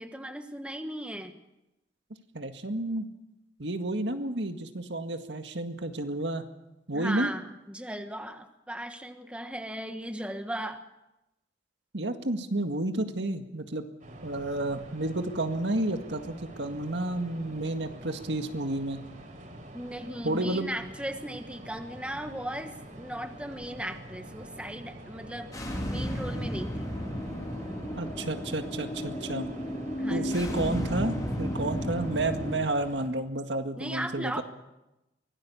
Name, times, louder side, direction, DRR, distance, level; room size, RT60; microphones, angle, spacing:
voice 1, 0.0-1.4 6.9-10.8 19.7-25.5 25.9-26.9 30.0-30.4 33.8-34.4, right 1 dB, 5° right, 6 dB, 1.3 m, -37 dB
voice 2, 2.3-3.1 3.6-6.5 6.9-7.3 11.9-13.9 14.2-19.0 20.2-20.7 28.0-29.5 30.1-34.4, right 2 dB, 80° right, 6 dB, 1.9 m, -31 dB
sound 1, 14.0-33.1, right 1 dB, 45° right, 4.7 m, -46 dB
sound 2, 25.5-32.6, equal, 20° left, 3.2 m, -33 dB
24.0 x 18.0 x 7.1 m, 0.93 s
head